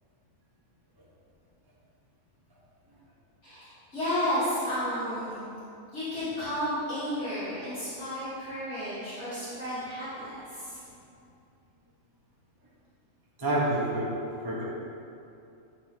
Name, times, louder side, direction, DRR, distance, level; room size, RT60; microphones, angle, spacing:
voice 1, 3.4-5.4 5.9-10.9, equal, 55° left, -13 dB, 2.2 m, -32 dB
voice 2, 13.4-14.1 14.4-14.6, right 1 dB, 20° right, -7 dB, 0.8 m, -27 dB
10.0 x 3.8 x 3.6 m, 2.6 s
omnidirectional pair, 1.4 m